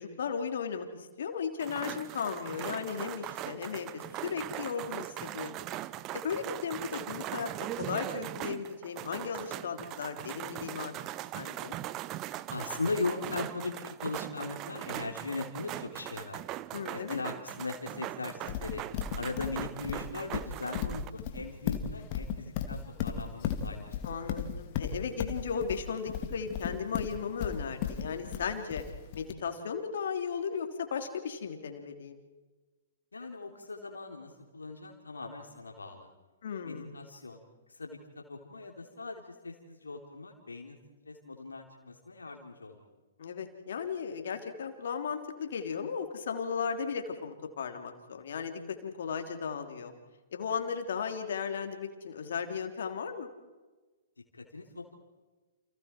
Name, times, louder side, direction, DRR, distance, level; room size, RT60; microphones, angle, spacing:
voice 1, 0.0-5.6 6.1-7.5 7.8-10.9 11.3-11.8 16.7-17.2 24.0-28.8 29.1-32.2 36.4-36.9 43.2-49.9 50.3-53.3, left 6 dB, 55° left, 5 dB, 3.4 m, -36 dB
sound 1, 1.6-21.1, right 15 dB, 25° right, 0.8 m, -40 dB
voice 2, 12.5-16.4 16.9-18.8 19.1-24.2 33.1-36.1 36.6-37.4 37.7-40.8 41.0-42.8 54.3-54.9, left 3 dB, 75° left, 2 dB, 3.4 m, -39 dB
Livestock farm animals working animals, 18.5-29.3, left 9 dB, 35° left, 2.6 m, -35 dB
30.0 x 29.0 x 4.6 m, 1.3 s
figure-of-eight pair, 115°, 0 cm